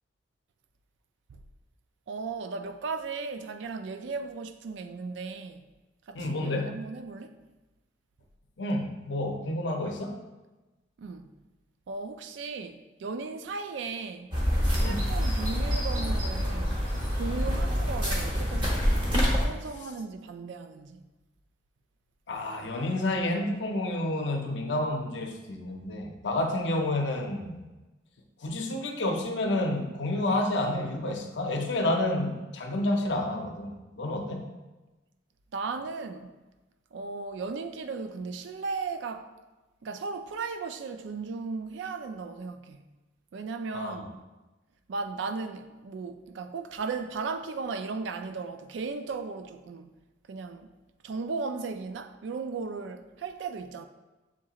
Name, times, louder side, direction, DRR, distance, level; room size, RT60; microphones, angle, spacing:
voice 1, 2.1-5.7 6.1-7.4 11.0-11.3 11.9-14.4 14.7-16.8 17.1-19.0 19.4-21.0 35.5-36.3 36.9-39.3 39.8-42.8 43.3-44.1 44.9-49.9 50.3-50.7 51.0-53.8, right 4 dB, 80° right, 0.3 m, -36 dB
voice 2, 6.1-6.8 8.6-10.2 14.8-15.1 22.3-27.6 28.4-34.5 43.7-43.9, left 1 dB, 80° left, 0.6 m, -29 dB
sound 1, 14.3-19.4, equal, 25° right, 0.8 m, -26 dB
7.2 x 2.8 x 2.4 m
head